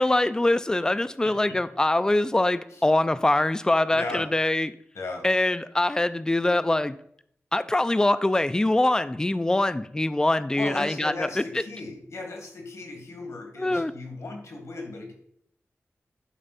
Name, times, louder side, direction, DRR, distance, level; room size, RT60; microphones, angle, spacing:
voice 1, 0.0-4.7 5.2-7.0 7.5-11.6 13.6-13.9, left 1 dB, 15° left, 13 dB, 0.3 m, -23 dB
voice 2, 1.2-1.6 2.7-2.8 3.9-4.3 4.9-5.3 10.5-15.1, left 2 dB, 85° left, 3 dB, 1.9 m, -36 dB
11.0 x 4.4 x 4.1 m, 0.70 s
wide cardioid pair, 110°, 5 cm